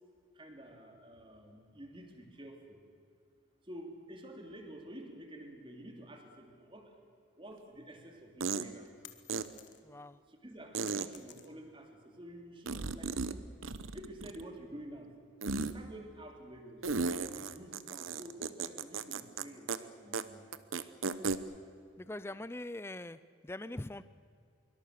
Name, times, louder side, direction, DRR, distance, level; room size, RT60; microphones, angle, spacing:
voice 1, 0.3-2.8 3.6-7.0 7.3-8.9 10.3-13.4 13.9-15.1 15.6-20.4, right 1 dB, 25° right, 3 dB, 3.1 m, -50 dB
sound 1, 7.5-7.6 8.4-8.7 9.3-9.4 10.7-11.1 12.7-13.3 13.6-14.5 15.4-15.7 16.8-19.4 19.7-19.8 20.1-20.2 20.5-21.4, right 4 dB, 70° right, 1.0 m, -35 dB
sound 2, 9.0-10.1 10.4-11.9, left 11 dB, 55° left, 1.6 m, -55 dB
voice 2, 9.8-10.2 22.0-24.0, left 1 dB, 10° left, 14 dB, 0.5 m, -42 dB
25.0 x 24.0 x 6.7 m, 2.3 s
head